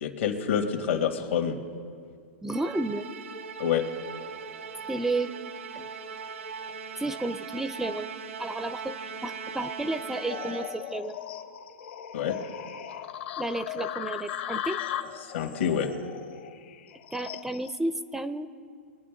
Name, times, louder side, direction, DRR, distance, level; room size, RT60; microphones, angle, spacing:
voice 1, 0.0-1.6 3.6-3.9 12.1-12.4 15.2-15.9, left 8 dB, 75° left, 3 dB, 2.1 m, -27 dB
voice 2, 2.4-3.1 4.9-5.3 5.7-5.9 7.0-8.1 8.4-11.2 13.4-14.8 17.1-18.5, right 2 dB, 5° right, 12 dB, 0.4 m, -32 dB
Musical instrument, 2.5-11.0, right 5 dB, 80° right, 0.8 m, -39 dB
sound 1, 10.3-17.8, left 10 dB, 60° left, 1.0 m, -37 dB
23.5 x 9.3 x 3.8 m, 2.2 s
hypercardioid pair, 135°, 7 cm